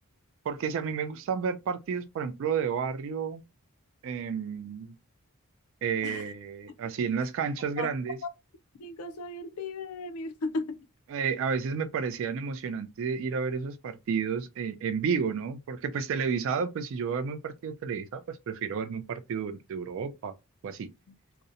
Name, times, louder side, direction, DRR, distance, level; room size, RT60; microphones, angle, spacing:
voice 1, 0.5-3.4 4.0-4.9 5.8-8.2 11.1-20.3 20.6-20.9, right 6 dB, 60° right, 0.3 m, -31 dB
voice 2, 8.8-10.8, left 3 dB, 80° left, 0.4 m, -35 dB
2.6 x 2.0 x 2.5 m
head